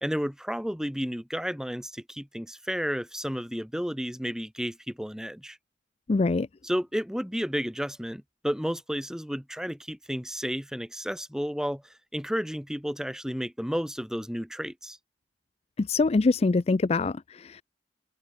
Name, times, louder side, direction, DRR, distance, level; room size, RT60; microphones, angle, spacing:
voice 1, 0.0-5.6 6.6-15.0, equal, 5° right, 3.5 m, -32 dB
voice 2, 6.1-6.5 15.8-17.6, left 3 dB, 35° left, 0.4 m, -24 dB
open air
head